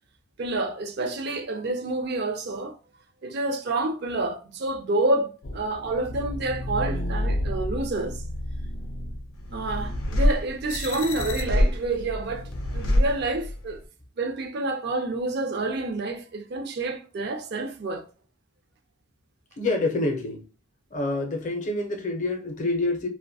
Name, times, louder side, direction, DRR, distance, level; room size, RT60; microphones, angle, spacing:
voice 1, 0.4-2.8 3.2-8.2 9.5-13.8 14.2-18.1, right 2 dB, 55° right, 0.4 m, -28 dB
sound 1, 5.4-13.8, left 1 dB, 90° left, 0.5 m, -28 dB
voice 2, 19.6-20.4 20.9-23.1, left 2 dB, 40° left, 0.5 m, -27 dB
2.5 x 2.1 x 2.6 m
head